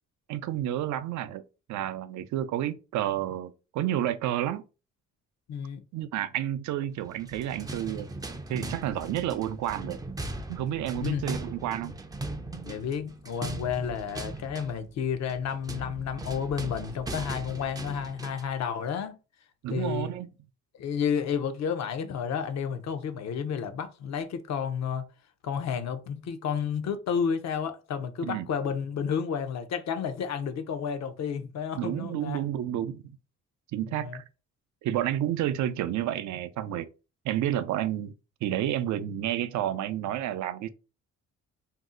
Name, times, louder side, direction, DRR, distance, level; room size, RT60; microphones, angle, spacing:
voice 1, 0.3-1.4 1.7-4.6 5.9-8.1 8.5-10.0 10.5-12.0 19.6-20.3 28.2-28.5 31.8-33.2 33.7-34.2 34.8-36.9 37.2-38.1 38.4-40.7, right 12 dB, 70° right, 0.4 m, -30 dB
voice 2, 5.5-5.8 11.0-11.2 12.6-19.2 19.7-20.1 20.8-25.1 25.4-32.4 33.9-34.2, left 7 dB, 60° left, 0.6 m, -31 dB
sound 1, 7.1-18.6, right 2 dB, 15° right, 0.4 m, -39 dB
2.6 x 2.0 x 3.7 m
cardioid pair, 90°, 30 cm